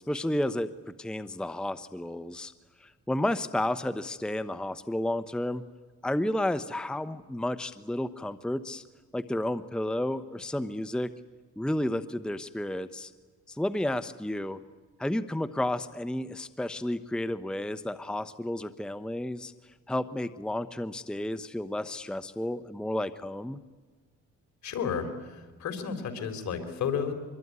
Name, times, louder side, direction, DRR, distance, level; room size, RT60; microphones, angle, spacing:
voice 1, 0.0-2.5 2.8-5.6 6.0-8.8 9.1-11.1 11.6-13.1 13.5-14.6 15.0-19.5 19.9-23.6, left 1 dB, 5° left, 13 dB, 0.8 m, -31 dB
voice 2, 24.6-27.1, left 7 dB, 65° left, 7 dB, 4.0 m, -32 dB
24.5 x 22.5 x 9.6 m, 1.4 s
cardioid pair, 90°, 30 cm